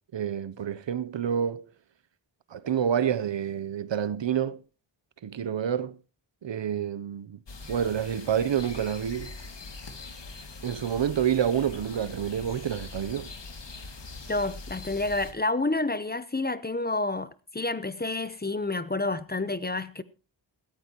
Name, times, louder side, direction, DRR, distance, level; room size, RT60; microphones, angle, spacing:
voice 1, 0.1-1.6 2.5-4.6 5.2-6.0 6.4-7.4 7.7-9.3 10.6-13.3, right 8 dB, 65° right, 0.7 m, -28 dB
sound 1, 7.5-15.3, left 3 dB, 60° left, 1.9 m, -42 dB
voice 2, 14.3-20.0, left 2 dB, 20° left, 0.7 m, -29 dB
17.5 x 14.0 x 2.9 m
wide cardioid pair, 75°, 47 cm